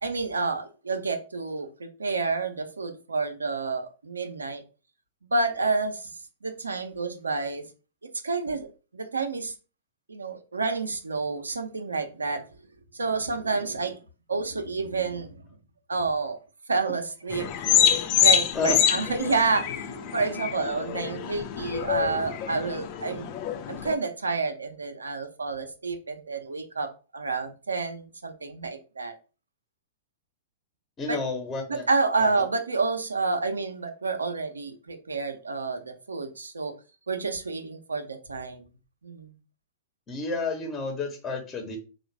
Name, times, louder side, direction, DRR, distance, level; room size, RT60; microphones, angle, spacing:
voice 1, 0.0-4.6 5.2-6.1 6.4-7.7 8.2-9.5 10.1-12.4 12.9-14.0 14.3-15.4 15.9-16.4 16.7-17.5 17.9-23.3 23.7-29.1 31.1-31.2 31.7-36.7 37.1-38.7 39.0-39.3, right 3 dB, 90° right, 0.7 m, -29 dB
sound 1, 17.3-23.9, left 8 dB, 45° left, 0.5 m, -26 dB
voice 2, 31.0-31.9 32.3-32.4 40.1-41.8, left 3 dB, 25° left, 1.2 m, -30 dB
3.9 x 2.4 x 4.6 m
hypercardioid pair, 110°, 0 cm